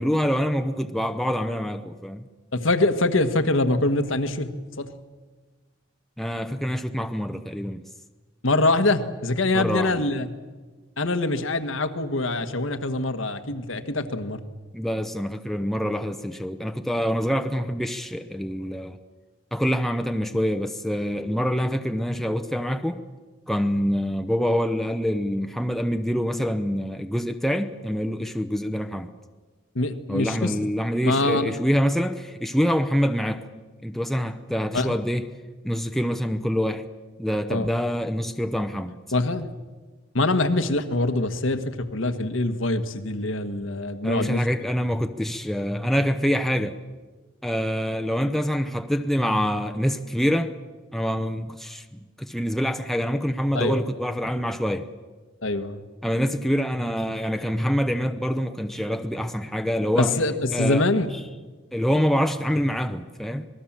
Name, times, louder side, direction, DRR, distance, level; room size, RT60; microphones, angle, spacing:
voice 1, 0.0-2.3 6.2-7.8 9.5-10.0 14.7-19.0 19.5-23.0 23.5-29.1 30.1-33.5 33.8-35.2 35.6-36.9 37.2-38.9 44.0-46.7 47.4-50.5 50.9-54.9 56.0-60.1 60.5-60.8 61.7-63.5, equal, ahead, 7 dB, 0.7 m, -25 dB
voice 2, 2.5-4.9 8.4-10.3 11.0-14.4 29.7-30.6 31.0-31.5 34.7-34.9 37.5-37.7 39.1-39.5 40.1-44.4 53.5-53.8 55.4-55.8 60.0-61.1, left 2 dB, 80° left, 9 dB, 1.5 m, -24 dB
26.5 x 20.0 x 7.5 m, 1.3 s
head